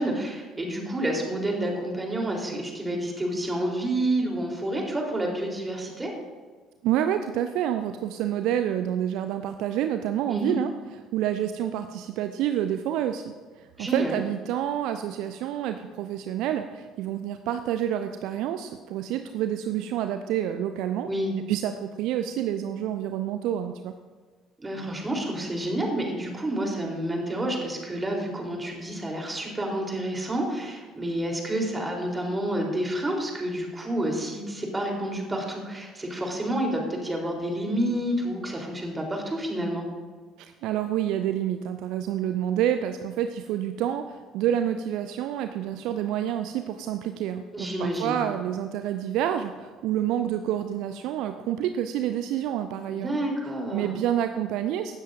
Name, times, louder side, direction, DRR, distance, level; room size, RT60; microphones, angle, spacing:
voice 1, 0.0-6.1 10.3-10.6 13.8-14.1 21.0-21.3 24.6-39.9 47.5-48.2 52.9-53.9, right 1 dB, 20° right, 0 dB, 3.4 m, -29 dB
voice 2, 6.8-10.7 11.1-21.1 21.5-23.9 40.4-53.1 53.7-55.0, right 10 dB, 55° right, 9 dB, 0.5 m, -28 dB
17.0 x 13.0 x 2.6 m, 1.5 s
figure-of-eight pair, 55°, 0 cm